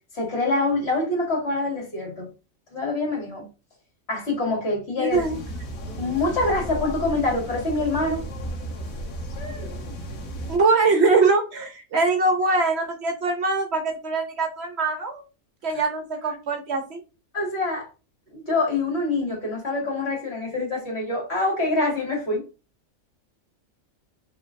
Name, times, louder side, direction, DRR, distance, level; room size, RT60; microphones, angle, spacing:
voice 1, 0.1-2.3 2.7-3.5 4.1-5.2 6.0-8.2 9.4-9.8 15.8-15.9 17.3-17.9 18.3-22.4, left 2 dB, 50° left, 2.2 m, -25 dB
voice 2, 5.0-5.3 10.5-15.2 15.6-17.0, right 3 dB, 60° right, 0.8 m, -22 dB
sound 1, 5.1-10.6, right 1 dB, 90° left, 1.4 m, -34 dB
5.1 x 3.2 x 2.5 m
omnidirectional pair, 1.4 m